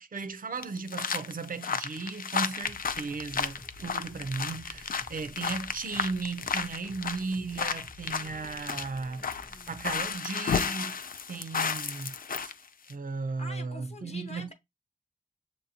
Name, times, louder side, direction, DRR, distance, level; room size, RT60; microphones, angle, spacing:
voice 1, 0.0-9.3 9.7-12.2 12.4-12.5 12.9-14.5, right 4 dB, 65° right, 0.5 m, -36 dB
sound 1, 0.6-12.5 12.9-13.0, left 6 dB, 65° left, 0.4 m, -33 dB
sound 2, 2.6-10.1, equal, 5° left, 0.6 m, -51 dB
voice 2, 8.2-9.8 13.4-14.5, left 2 dB, 45° left, 0.9 m, -48 dB
6.9 x 2.6 x 2.8 m
wide cardioid pair, 75°, 15 cm